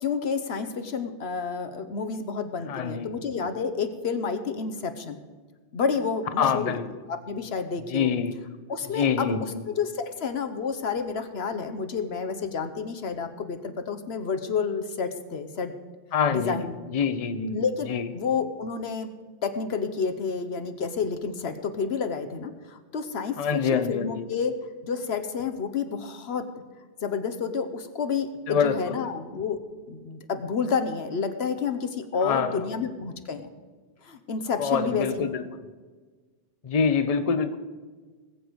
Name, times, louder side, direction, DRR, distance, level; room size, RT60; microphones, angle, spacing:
voice 1, 0.0-5.2 5.7-8.1 8.7-15.7 16.3-16.7 17.5-19.1 19.4-24.6 24.8-26.5 27.0-29.6 29.9-33.5 34.0-35.3, left 5 dB, 80° left, 9 dB, 1.2 m, -30 dB
voice 2, 2.7-3.1 6.4-6.8 7.9-8.4 8.9-9.6 16.1-16.6 16.9-17.6 17.9-18.1 23.4-24.2 28.5-29.0 32.2-32.7 34.6-35.4 36.6-37.6, left 6 dB, 40° left, 10 dB, 0.8 m, -25 dB
19.5 x 7.8 x 5.1 m, 1.4 s
omnidirectional pair, 1.1 m